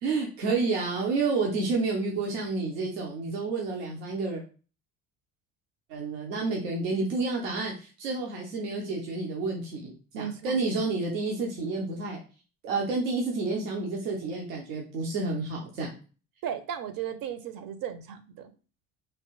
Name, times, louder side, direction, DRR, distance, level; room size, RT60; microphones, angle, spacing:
voice 1, 0.0-4.4 5.9-12.2 12.6-15.9, right 3 dB, 80° right, -1 dB, 0.9 m, -30 dB
voice 2, 10.1-10.6 16.4-18.5, right 9 dB, 50° right, 10 dB, 0.7 m, -35 dB
3.3 x 2.4 x 3.0 m, 0.36 s
hypercardioid pair, 65°, 46 cm